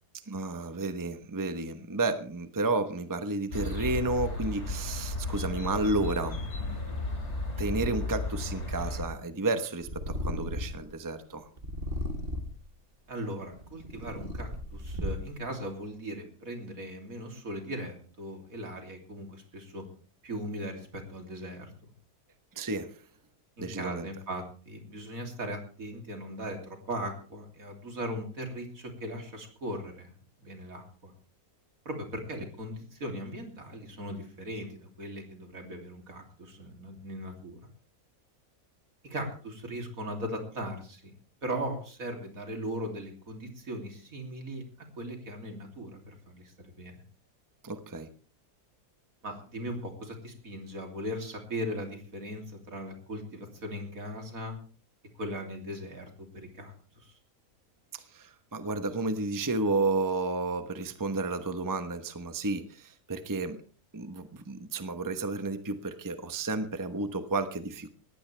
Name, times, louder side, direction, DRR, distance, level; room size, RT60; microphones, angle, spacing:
voice 1, 0.3-6.8 7.6-11.4 22.6-22.9 23.6-24.1 47.6-48.1 57.9-63.6 63.9-67.9, right 2 dB, 15° right, 9 dB, 0.9 m, -32 dB
sound 1, 3.5-9.0, left 2 dB, 50° left, 3.4 m, -34 dB
Purr, 9.8-10.9 11.6-12.7 13.4-15.5, left 1 dB, 40° right, 2.2 m, -35 dB
voice 2, 13.1-19.8 20.2-21.7 23.6-30.1 30.4-31.1 31.9-37.7 39.0-41.1 41.4-47.0 49.2-54.5 55.2-57.2, equal, 70° right, 3 dB, 3.5 m, -38 dB
19.0 x 15.0 x 3.4 m, 0.39 s
omnidirectional pair, 1.5 m